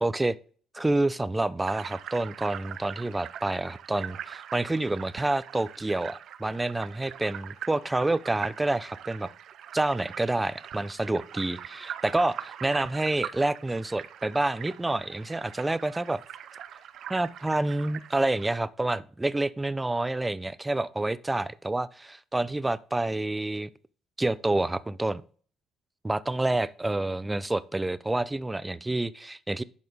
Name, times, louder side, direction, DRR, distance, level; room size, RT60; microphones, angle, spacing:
voice 1, 0.0-0.4 0.7-9.3 9.7-16.2 17.1-23.7 24.2-25.2 26.0-29.6, right 2 dB, 15° right, 0.6 m, -28 dB
sound 1, 1.6-18.5, right 10 dB, 65° right, 0.6 m, -42 dB
11.0 x 4.2 x 5.1 m
supercardioid pair, 70°, 0 cm